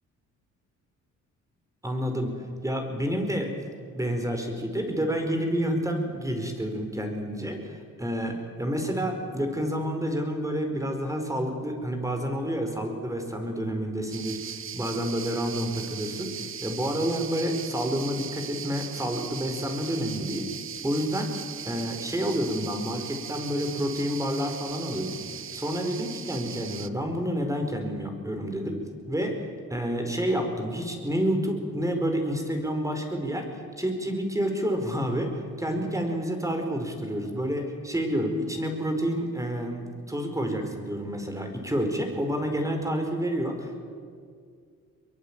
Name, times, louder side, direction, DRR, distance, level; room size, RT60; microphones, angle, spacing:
voice 1, 1.8-2.4 2.6-3.5 3.9-16.4 16.6-20.5 20.8-21.3 21.6-25.2 25.5-28.8 29.1-29.4 29.7-33.5 33.8-35.3 35.6-43.8, equal, 10° right, 4 dB, 5.0 m, -29 dB
sound 1, 14.1-26.9, right 8 dB, 45° right, 1.0 m, -39 dB
23.0 x 23.0 x 9.0 m, 2.2 s
cardioid pair, 90°, 30 cm